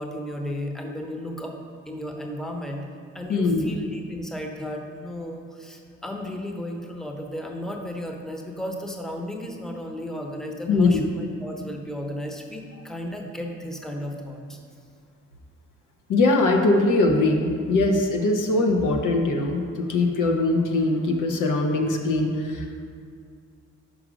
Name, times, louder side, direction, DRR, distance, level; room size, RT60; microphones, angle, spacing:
voice 1, 0.0-1.6 1.9-2.8 3.1-14.6, left 1 dB, ahead, 2 dB, 0.8 m, -34 dB
voice 2, 3.3-3.7 10.7-11.1 16.1-22.8, left 2 dB, 80° left, 2 dB, 0.9 m, -21 dB
6.3 x 4.9 x 5.0 m, 2.3 s
cardioid pair, 70°, 31 cm